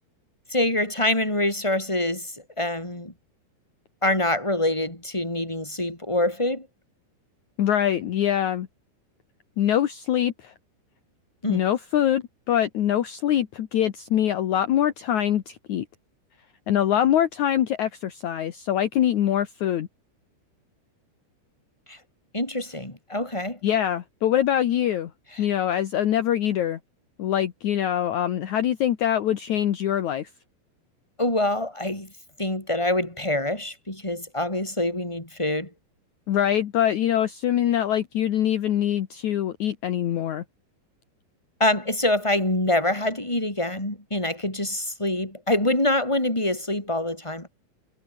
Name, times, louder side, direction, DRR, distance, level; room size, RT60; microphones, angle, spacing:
voice 1, 0.5-3.1 4.0-6.7 11.4-11.6 21.9-22.0 22.3-23.6 25.4-25.5 31.2-32.1 32.4-35.7 41.6-47.5, left 1 dB, 5° left, 5.8 m, -25 dB
voice 2, 7.6-8.7 9.6-10.5 11.5-15.8 16.7-19.9 23.6-25.1 25.4-26.8 27.2-30.3 36.3-40.4, left 11 dB, 65° left, 2.0 m, -24 dB
omnidirectional pair, 5.3 m